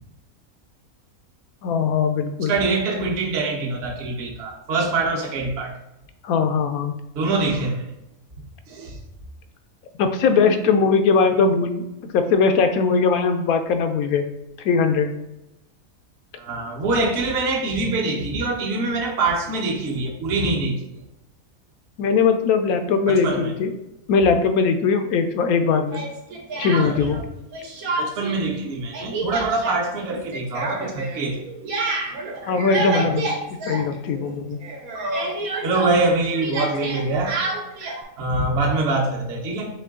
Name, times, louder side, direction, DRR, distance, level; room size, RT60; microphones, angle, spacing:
voice 1, 1.6-2.5 6.2-6.9 10.0-14.3 14.6-15.1 22.0-23.7 24.1-26.0 26.6-27.2 32.5-33.4 33.7-34.6, left 5 dB, 85° left, 7 dB, 1.1 m, -20 dB
voice 2, 2.4-5.7 7.2-7.8 8.7-9.0 16.4-20.8 23.1-23.5 26.8-27.0 28.0-31.4 33.0-33.1 35.6-37.4 38.2-39.7, right 3 dB, 55° right, 0 dB, 1.0 m, -24 dB
Speech, 25.9-27.2 27.5-28.4 28.6-34.3 34.6-38.0, right 3 dB, 85° right, 1.3 m, -29 dB
4.5 x 3.2 x 3.6 m, 0.90 s
omnidirectional pair, 1.5 m